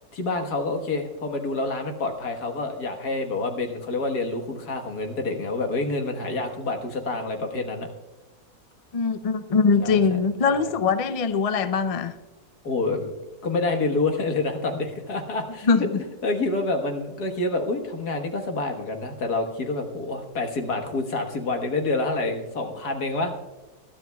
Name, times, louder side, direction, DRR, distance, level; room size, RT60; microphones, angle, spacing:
voice 1, 0.1-7.9 9.8-10.0 10.5-10.7 12.6-13.1 13.4-23.3, left 3 dB, 75° left, 4 dB, 1.9 m, -27 dB
voice 2, 8.9-12.1 15.6-15.9, left 5 dB, 60° left, 10 dB, 0.3 m, -22 dB
20.5 x 12.5 x 2.3 m, 1.1 s
omnidirectional pair, 1.7 m